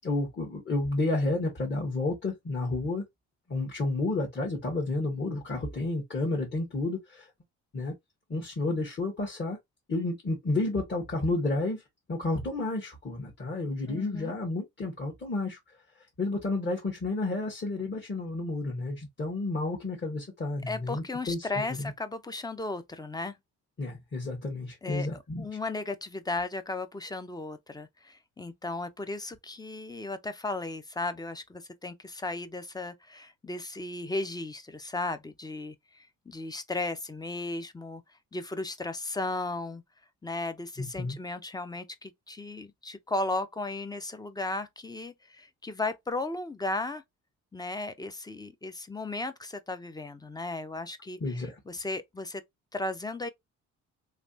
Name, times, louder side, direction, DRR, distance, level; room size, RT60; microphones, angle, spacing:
voice 1, 0.0-3.0 3.5-7.3 7.7-7.9 8.3-9.6 9.9-11.8 12.1-15.6 16.2-21.9 23.8-25.4 40.8-41.2 51.2-51.6, left 2 dB, 35° left, 1.5 m, -31 dB
voice 2, 13.9-14.3 20.7-23.3 24.8-25.1 25.4-38.0 38.3-39.8 40.2-47.0 47.5-52.4 52.7-53.3, left 2 dB, 15° left, 0.5 m, -35 dB
3.3 x 2.9 x 2.7 m
cardioid pair, 90°, 30 cm